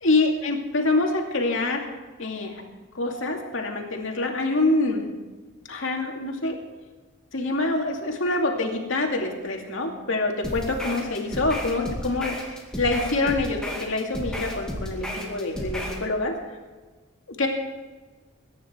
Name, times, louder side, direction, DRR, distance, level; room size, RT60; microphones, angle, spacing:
voice 1, 0.0-1.8 2.2-2.6 2.9-5.1 5.7-6.6 7.3-12.4 12.8-16.3 17.3-17.5, left 2 dB, 70° left, 1 dB, 2.6 m, -25 dB
sound 1, 10.4-16.0, equal, 5° left, 2.4 m, -33 dB
22.5 x 10.5 x 4.6 m, 1.3 s
head